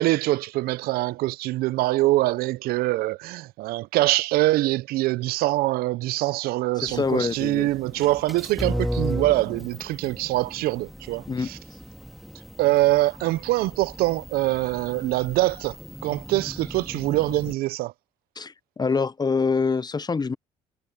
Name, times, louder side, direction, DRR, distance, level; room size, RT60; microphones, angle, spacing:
voice 1, 0.0-11.6 12.6-15.8 16.0-17.9, right 18 dB, 75° right, 0.7 m, -24 dB
voice 2, 6.8-7.7 11.3-11.5 18.4-20.3, left 4 dB, 25° left, 0.8 m, -25 dB
sound 1, 6.9-17.5, equal, ahead, 2.3 m, -36 dB
hypercardioid pair, 60°, 16 cm